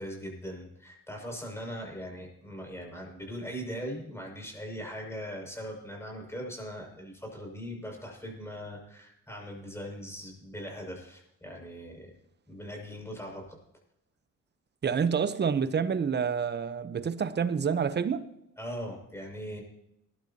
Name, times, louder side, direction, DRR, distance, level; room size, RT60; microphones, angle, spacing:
voice 1, 0.0-12.1 12.5-13.6 18.6-19.6, equal, 10° left, 6.3 m, -40 dB
voice 2, 14.8-18.3, right 6 dB, 35° right, 0.9 m, -28 dB
20.0 x 12.0 x 2.9 m
cardioid pair, 90°, 30 cm